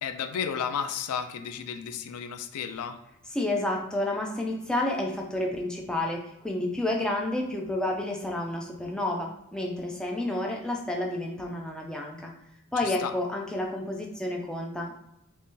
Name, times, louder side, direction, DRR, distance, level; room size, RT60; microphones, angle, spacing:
voice 1, 0.0-3.0 12.8-13.1, left 7 dB, 90° left, 8 dB, 0.4 m, -33 dB
voice 2, 3.3-12.3 12.7-14.9, left 1 dB, 5° left, 0 dB, 0.3 m, -30 dB
2.9 x 2.7 x 3.7 m, 0.84 s
head